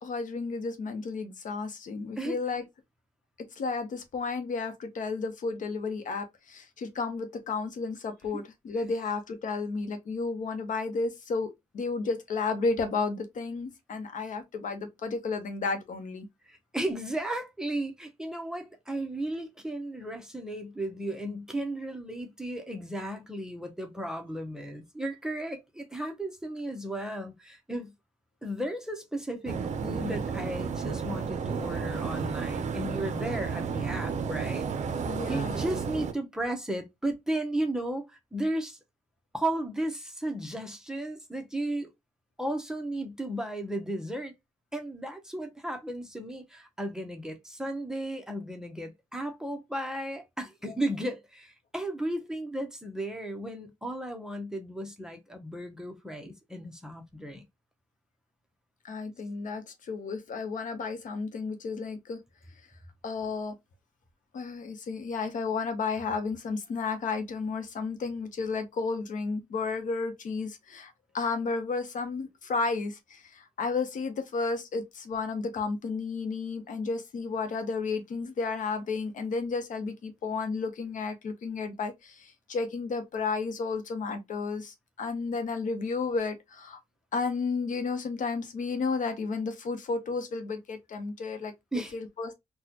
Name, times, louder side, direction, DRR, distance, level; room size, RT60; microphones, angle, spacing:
voice 1, 0.0-2.6 3.6-16.3 35.1-35.7 58.8-62.2 63.0-63.5 64.3-86.8 87.1-91.5 91.9-92.4, left 4 dB, 70° left, 0.8 m, -32 dB
voice 2, 16.5-27.9 28.4-34.7 35.3-38.8 39.3-41.9 42.4-44.3 44.7-57.4 91.7-91.9, right 1 dB, 5° right, 0.7 m, -34 dB
sound 1, 29.5-36.1, right 6 dB, 60° right, 0.5 m, -32 dB
4.1 x 2.2 x 2.8 m
wide cardioid pair, 125°, 14 cm